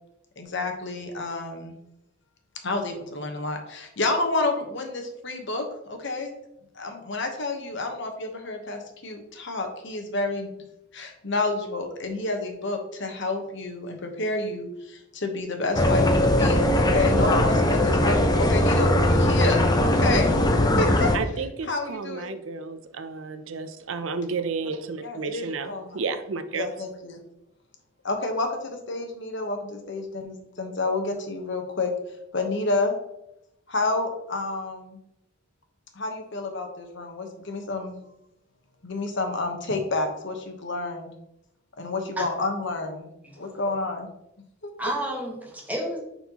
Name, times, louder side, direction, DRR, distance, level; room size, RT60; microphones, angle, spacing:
voice 1, 0.4-1.7 2.6-6.3 6.7-10.5 10.9-20.3 20.8-21.1 21.7-22.3 25.0-26.0 26.5-27.2 28.0-31.9 32.3-32.9 33.7-35.0 35.9-38.0 38.8-41.1 41.8-43.1 43.4-44.1, left 2 dB, 65° left, 4 dB, 1.1 m, -29 dB
sound 1, 15.7-21.2, left 1 dB, 20° left, 0.6 m, -20 dB
voice 2, 21.1-26.7, right 4 dB, 80° right, 9 dB, 0.6 m, -32 dB
voice 3, 43.2-43.6 44.8-46.0, right 1 dB, 10° right, -2 dB, 1.5 m, -31 dB
9.2 x 4.3 x 2.9 m, 0.82 s
head